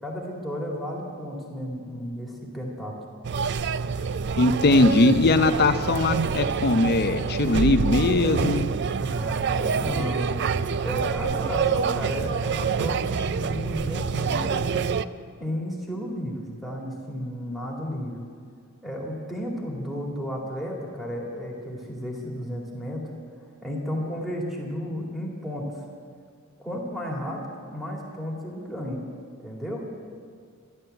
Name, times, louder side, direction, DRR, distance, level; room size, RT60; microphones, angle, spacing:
voice 1, 0.0-3.0 9.0-15.0 15.4-18.2 18.8-23.2 23.6-25.8 26.6-27.4 27.7-29.0 29.4-29.9, equal, ahead, -3 dB, 2.3 m, -33 dB
sound 1, 3.2-15.0, right 6 dB, 55° right, 0.4 m, -26 dB
voice 2, 4.4-8.7, left 2 dB, 45° left, 9 dB, 0.7 m, -20 dB
13.5 x 11.0 x 7.8 m, 2.1 s
head